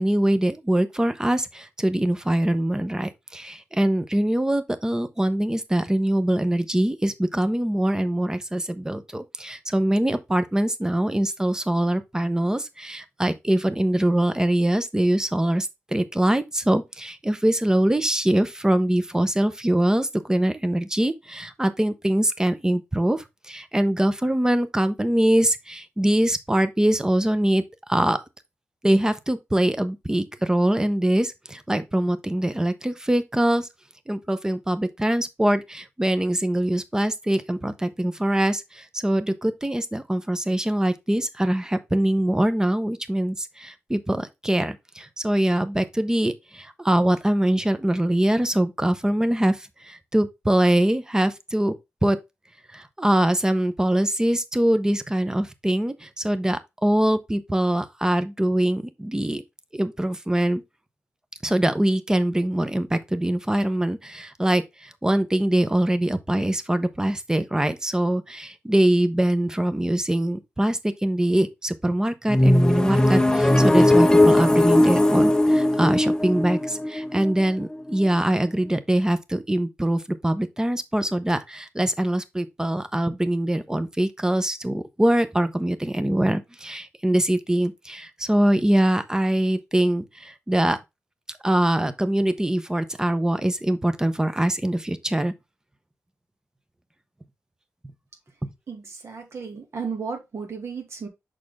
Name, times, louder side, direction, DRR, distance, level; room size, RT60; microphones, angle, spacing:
voice 1, 0.0-27.6 27.9-28.2 28.8-33.7 34.1-51.7 52.0-52.2 52.7-59.4 59.7-60.6 61.4-90.8 91.4-95.3, right 1 dB, 15° right, 0.8 m, -23 dB
sound 1, 72.3-78.1, left 1 dB, 15° left, 0.5 m, -19 dB
voice 2, 98.7-101.1, right 5 dB, 65° right, 2.3 m, -34 dB
6.4 x 4.3 x 3.5 m
wide cardioid pair, 100°, 5 cm